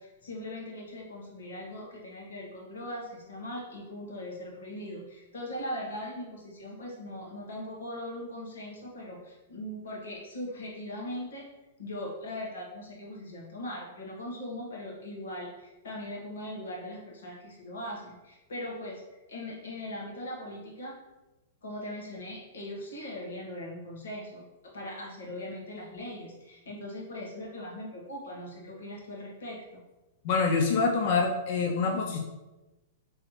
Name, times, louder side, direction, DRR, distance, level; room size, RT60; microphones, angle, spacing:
voice 1, 0.0-11.4 11.8-19.0 19.3-20.9 21.6-24.4 24.7-29.8, left 1 dB, 80° left, -2 dB, 1.3 m, -40 dB
voice 2, 30.2-32.2, left 4 dB, 55° left, 1 dB, 0.5 m, -26 dB
4.7 x 3.1 x 3.1 m, 1.1 s
hypercardioid pair, 120°, 0 cm